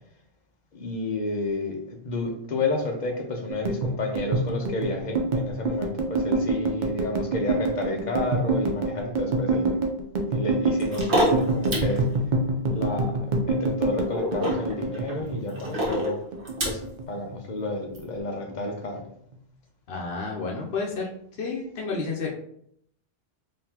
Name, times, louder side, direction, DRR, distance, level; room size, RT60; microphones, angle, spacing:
voice 1, 0.7-9.8 10.3-12.1 12.7-16.2 16.6-19.0, left 2 dB, 50° left, 2 dB, 0.7 m, -30 dB
sound 1, 3.5-16.1 16.3-17.4 17.7-18.0 18.3-19.0, right 2 dB, 55° right, 0.7 m, -26 dB
sound 2, 10.8-12.0 14.1-16.9 17.9-18.0, equal, 85° right, 1.4 m, -27 dB
voice 2, 19.9-21.1 21.4-22.3, left 4 dB, 70° left, -1 dB, 0.9 m, -30 dB
3.9 x 2.9 x 2.8 m, 0.69 s
omnidirectional pair, 1.1 m